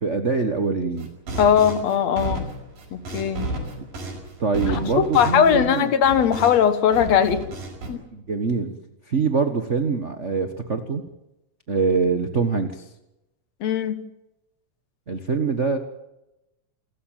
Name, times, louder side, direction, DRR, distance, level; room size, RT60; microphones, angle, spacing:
voice 1, 0.0-1.1 3.8-3.9 4.4-5.9 8.1-8.8 9.1-11.0 11.7-12.9 15.1-15.8, right 4 dB, 65° right, 7 dB, 0.7 m, -24 dB
sound 1, 1.0-6.7 6.9-7.9, right 2 dB, 85° right, 7.1 m, -32 dB
voice 2, 1.4-2.5 2.9-3.5 4.7-7.4 7.9-8.0 13.6-14.0, left 8 dB, 60° left, 11 dB, 2.2 m, -19 dB
28.5 x 14.0 x 9.1 m, 0.93 s
omnidirectional pair, 3.8 m